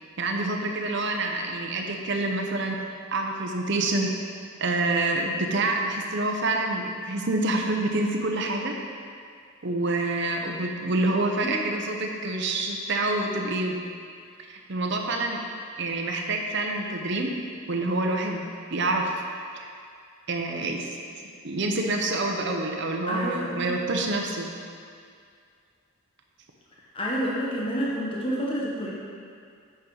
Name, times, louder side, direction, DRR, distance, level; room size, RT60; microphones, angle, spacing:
voice 1, 0.2-2.8 3.1-4.1 4.6-8.8 9.6-13.8 14.5-15.4 15.8-17.3 17.7-18.4 18.7-19.2 20.3-20.9 21.4-24.5, right 2 dB, 55° right, 2 dB, 0.8 m, -27 dB
voice 2, 23.1-23.7 26.9-28.9, equal, 25° left, -5 dB, 1.0 m, -29 dB
8.5 x 5.7 x 3.9 m, 2.2 s
head